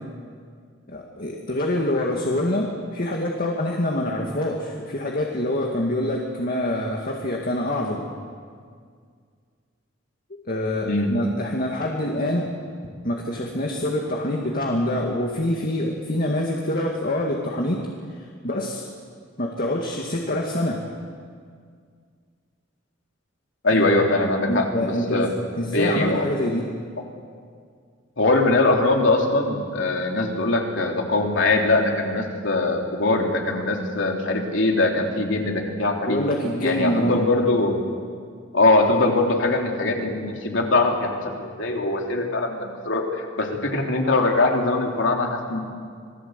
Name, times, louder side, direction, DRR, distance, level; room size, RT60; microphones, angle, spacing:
voice 1, 0.9-8.1 10.5-12.5 13.0-18.8 19.4-20.8 23.7-23.8 24.5-25.3 25.6-26.7 36.1-37.2, left 1 dB, 45° left, 0 dB, 2.0 m, -25 dB
voice 2, 23.6-25.3 25.7-26.3 28.2-36.2 36.6-37.8 38.5-45.6, left 2 dB, 70° left, 1 dB, 3.4 m, -22 dB
27.0 x 19.0 x 8.2 m, 2.1 s
head